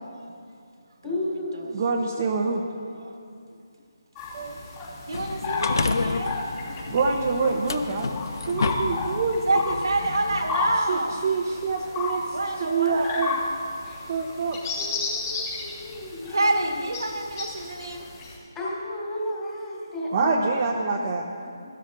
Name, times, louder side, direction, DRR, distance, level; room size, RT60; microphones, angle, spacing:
voice 1, 1.0-1.8 6.6-6.9 13.8-14.1 14.8-16.8 17.5-17.7 18.5-21.7, left 1 dB, 15° left, -6 dB, 2.8 m, -34 dB
voice 2, 1.7-2.6 4.3-4.6 6.9-9.4 10.9-12.4 12.7-13.4 14.1-14.8 20.1-21.3, right 4 dB, 35° right, -1 dB, 0.8 m, -26 dB
sound 1, 4.2-18.4, left 3 dB, 35° left, 3.0 m, -33 dB
sound 2, 5.1-10.8, left 4 dB, 65° left, 0.5 m, -31 dB
voice 3, 5.1-6.4 6.7-7.0 9.4-11.2 12.3-13.2 16.3-18.1, right 2 dB, 80° right, 2 dB, 1.7 m, -28 dB
16.0 x 12.5 x 2.7 m, 2.4 s
figure-of-eight pair, 160°, 2 cm